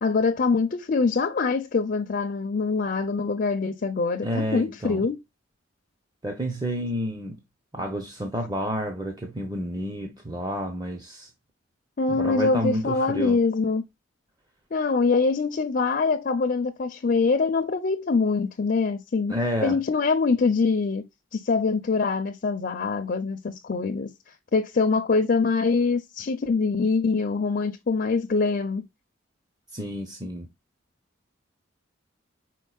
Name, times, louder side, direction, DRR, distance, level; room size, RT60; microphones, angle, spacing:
voice 1, 0.0-5.2 12.0-13.8 14.7-19.4 19.6-21.0 21.3-24.1 24.5-28.8, left 4 dB, 45° left, 0.5 m, -24 dB
voice 2, 4.2-5.1 6.2-7.4 7.7-11.3 12.1-13.4 19.3-19.8 29.7-30.5, equal, 20° right, 0.7 m, -30 dB
4.8 x 4.5 x 2.3 m
head